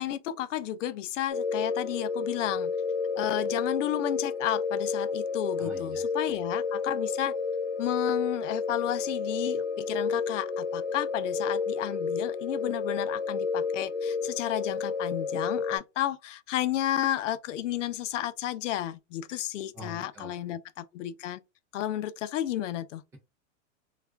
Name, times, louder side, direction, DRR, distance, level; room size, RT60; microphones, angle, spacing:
voice 1, 0.0-2.7 3.2-7.3 7.8-21.4 21.7-23.0, left 12 dB, 70° left, 0.6 m, -32 dB
sound 1, 1.3-15.8, left 5 dB, 50° left, 1.1 m, -31 dB
voice 2, 5.6-6.5 19.7-20.5, equal, 10° right, 0.4 m, -46 dB
2.4 x 2.3 x 3.3 m
supercardioid pair, 165°, 39 cm